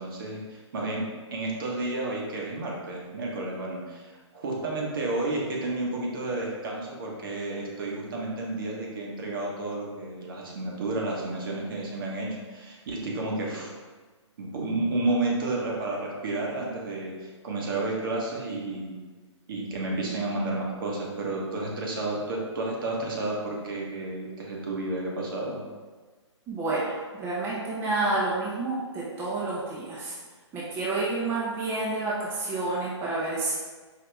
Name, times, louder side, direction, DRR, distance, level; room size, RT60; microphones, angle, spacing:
voice 1, 0.0-13.7 14.4-19.0 19.5-25.6, right 2 dB, 45° right, -2 dB, 1.1 m, -31 dB
voice 2, 26.5-30.1 30.5-33.5, right 2 dB, 15° right, -7 dB, 0.7 m, -29 dB
4.8 x 2.8 x 3.3 m, 1.4 s
figure-of-eight pair, 135°, 15 cm